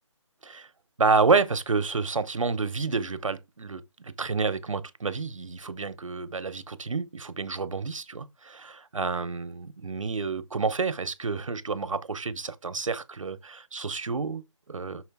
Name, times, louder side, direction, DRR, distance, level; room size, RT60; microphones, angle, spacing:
voice 1, 1.0-15.0, right 4 dB, 90° right, 0.9 m, -29 dB
6.2 x 5.0 x 3.5 m
hypercardioid pair, 180°, 16 cm